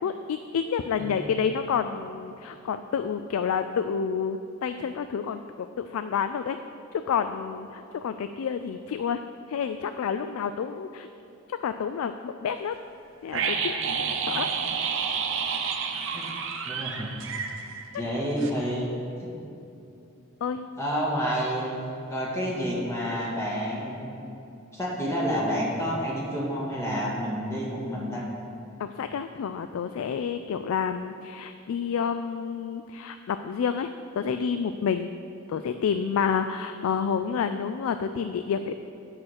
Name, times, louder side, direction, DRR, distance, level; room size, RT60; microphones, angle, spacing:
voice 1, 0.0-5.4 5.8-6.6 6.9-9.2 9.5-11.1 11.5-12.7 13.2-13.8 14.3-14.5 20.4-20.6 28.8-33.9 34.1-35.1 35.5-38.7, left 6 dB, 85° left, 9 dB, 0.3 m, -29 dB
sound 1, 13.3-18.1 18.4-18.5, right 6 dB, 65° right, 0.7 m, -29 dB
voice 2, 16.6-17.1 17.9-18.9 20.8-21.8 22.1-24.2 24.7-28.2, equal, 15° left, -5 dB, 1.8 m, -29 dB
8.7 x 5.8 x 6.4 m, 2.7 s
head